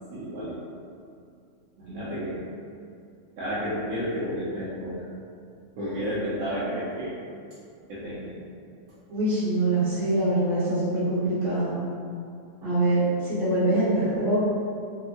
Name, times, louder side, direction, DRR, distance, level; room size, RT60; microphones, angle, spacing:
voice 1, 0.1-0.6 1.8-2.4 3.4-4.9 5.8-7.1 7.9-8.3, equal, 70° right, -11 dB, 1.1 m, -31 dB
voice 2, 9.1-11.8 12.6-14.4, right 1 dB, 40° right, -13 dB, 1.4 m, -24 dB
3.4 x 2.0 x 2.8 m, 2.4 s
omnidirectional pair, 1.6 m